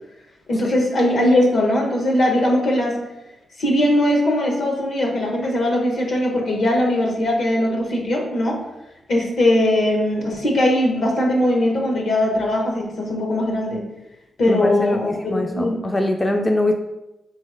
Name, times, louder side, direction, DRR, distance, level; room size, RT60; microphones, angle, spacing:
voice 1, 0.5-3.0 3.6-8.6 9.1-13.8 14.4-15.8, left 1 dB, 70° left, 0 dB, 1.0 m, -20 dB
voice 2, 14.5-16.7, left 1 dB, 20° left, 4 dB, 0.3 m, -23 dB
3.9 x 3.2 x 3.3 m, 0.95 s
cardioid pair, 75°, 0 cm